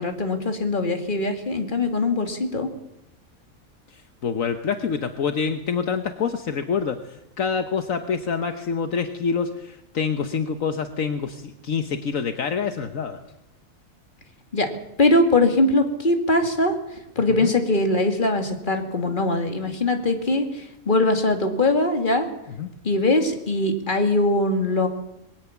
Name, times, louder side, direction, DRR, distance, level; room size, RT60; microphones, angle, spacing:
voice 1, 0.0-2.7 14.5-14.7 15.0-16.7 17.2-22.3 22.8-24.9, left 2 dB, 35° left, 5 dB, 2.4 m, -21 dB
voice 2, 3.9-13.2 17.4-17.5 22.6-22.7, left 6 dB, 70° left, 8 dB, 1.4 m, -26 dB
21.5 x 17.5 x 7.2 m, 0.85 s
omnidirectional pair, 1.5 m